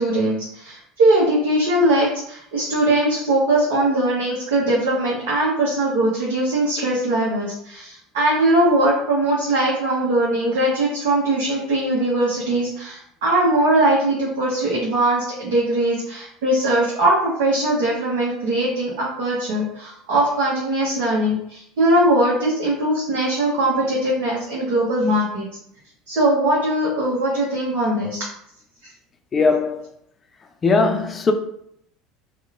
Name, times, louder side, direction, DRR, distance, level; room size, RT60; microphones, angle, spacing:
voice 1, 0.0-25.5 26.1-28.2, right 1 dB, 70° right, 0.7 m, -20 dB
voice 2, 29.3-29.9 30.6-31.3, left 4 dB, 30° left, 0.4 m, -19 dB
2.9 x 2.1 x 2.4 m
hypercardioid pair, 75°, 0 cm